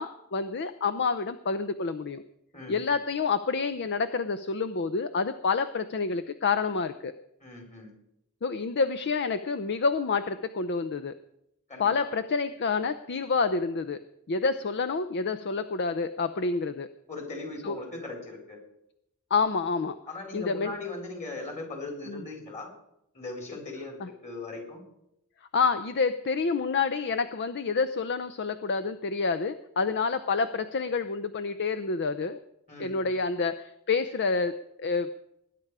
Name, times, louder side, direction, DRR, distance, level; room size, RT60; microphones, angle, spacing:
voice 1, 0.0-2.2 2.7-7.1 8.4-11.2 11.8-14.0 14.3-16.9 17.6-17.8 19.3-20.0 20.3-20.7 22.1-22.2 24.0-24.1 25.5-32.4 32.8-35.1, left 4 dB, 50° left, 11 dB, 0.6 m, -28 dB
voice 2, 2.5-3.0 7.4-7.9 11.7-11.9 17.1-18.6 20.1-22.7 23.1-24.8 32.7-33.1, left 2 dB, 35° left, 2 dB, 4.0 m, -39 dB
19.5 x 10.0 x 4.8 m, 0.80 s
head